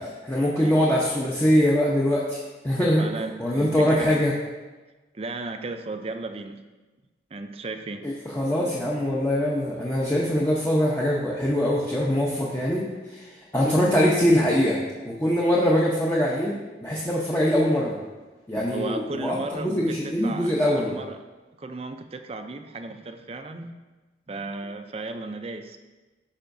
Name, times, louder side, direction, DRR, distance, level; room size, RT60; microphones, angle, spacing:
voice 1, 0.0-2.4 2.6-3.1 3.4-4.3 8.0-16.5 16.8-18.0 18.5-20.9, equal, 15° left, -4 dB, 0.7 m, -23 dB
voice 2, 3.0-4.2 5.1-6.7 7.3-8.1 15.1-15.2 18.7-21.2 21.6-23.7 24.3-25.8, right 2 dB, 35° right, 7 dB, 0.4 m, -35 dB
11.5 x 5.6 x 2.6 m, 1.2 s
head